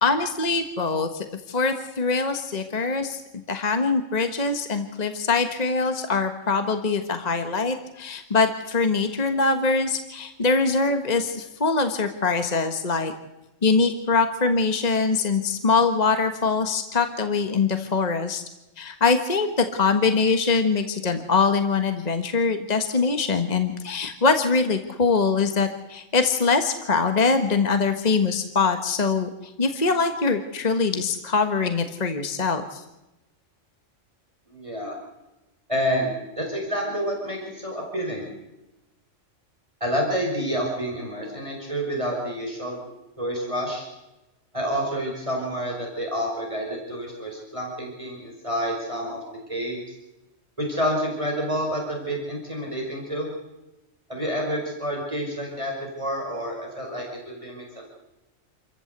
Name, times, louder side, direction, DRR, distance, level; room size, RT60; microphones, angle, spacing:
voice 1, 0.0-3.2 3.5-13.1 13.6-18.4 18.8-32.8, left 4 dB, 35° left, 7 dB, 1.5 m, -23 dB
voice 2, 34.5-35.0 35.7-38.3 39.8-42.8 43.2-43.9 44.5-49.2 49.5-49.8 50.6-53.3 54.1-57.8, equal, 25° right, 0 dB, 5.3 m, -28 dB
28.0 x 14.5 x 8.1 m, 0.98 s
omnidirectional pair, 1.3 m